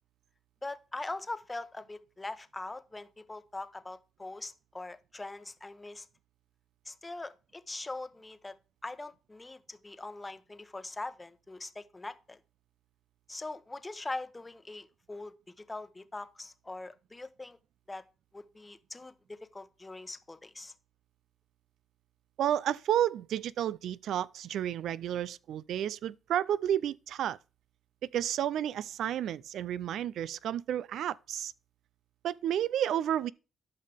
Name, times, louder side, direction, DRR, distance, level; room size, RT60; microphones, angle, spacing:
voice 1, 0.6-6.1 6.8-8.5 8.8-12.4 13.3-15.3 15.6-17.6 17.9-18.0 18.3-20.7, left 2 dB, 20° left, 0.9 m, -42 dB
voice 2, 22.4-27.4 28.1-31.5 32.2-33.3, right 10 dB, 75° right, 0.3 m, -31 dB
12.0 x 5.6 x 3.5 m
cardioid pair, 90°, 0 cm